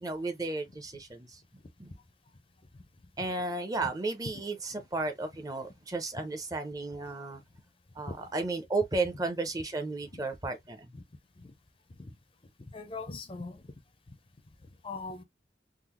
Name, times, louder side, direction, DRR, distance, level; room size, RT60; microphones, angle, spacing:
voice 1, 0.0-1.3 1.8-1.9 3.2-7.4 8.0-10.9, right 3 dB, 20° right, 0.6 m, -33 dB
voice 2, 12.7-13.6 14.8-15.2, left 3 dB, 30° left, 0.5 m, -41 dB
3.7 x 2.0 x 2.9 m
head